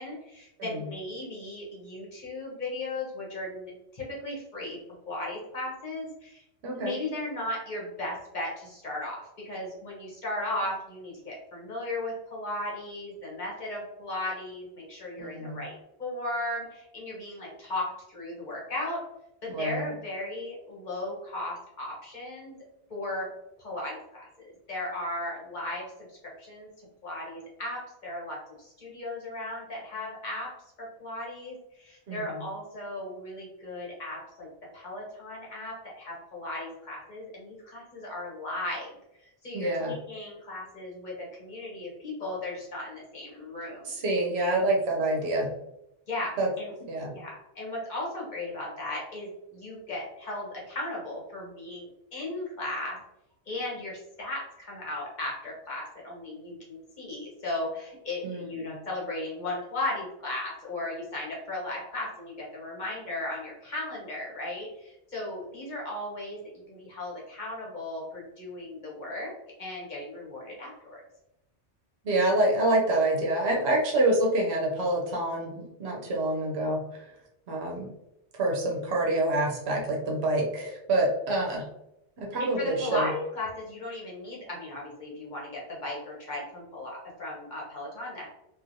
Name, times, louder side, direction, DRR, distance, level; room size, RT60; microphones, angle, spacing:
voice 1, 0.0-4.8 5.1-6.4 6.7-15.7 16.0-19.0 19.6-22.5 22.9-23.3 23.6-26.7 27.0-30.5 30.8-34.5 34.7-38.9 39.4-44.0 44.4-44.6 46.1-46.7 47.1-53.0 53.5-69.3 69.6-71.0 82.4-88.3, left 1 dB, 45° left, -4 dB, 1.0 m, -36 dB
voice 2, 6.6-7.0 15.2-15.6 19.5-19.8 32.1-32.4 39.5-39.9 43.9-45.5 46.4-46.5 46.9-47.1 58.2-58.7 72.0-76.8 77.5-77.9 78.4-81.6 82.2-83.1, right 1 dB, 70° right, -1 dB, 0.9 m, -27 dB
3.0 x 2.5 x 2.5 m, 0.84 s
omnidirectional pair, 1.1 m